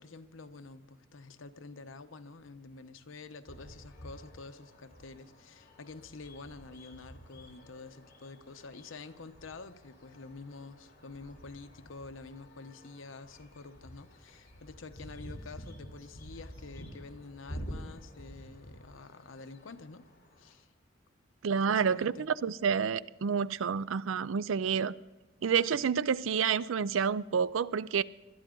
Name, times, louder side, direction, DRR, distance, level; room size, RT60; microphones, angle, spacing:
voice 1, 0.0-20.1 20.4-20.7 21.7-22.3, left 3 dB, 90° left, 0.9 m, -48 dB
sound 1, 3.5-20.5, equal, 50° left, 3.7 m, -49 dB
voice 2, 21.4-24.9 25.4-28.0, right 6 dB, 85° right, 0.4 m, -29 dB
21.5 x 12.5 x 3.8 m
head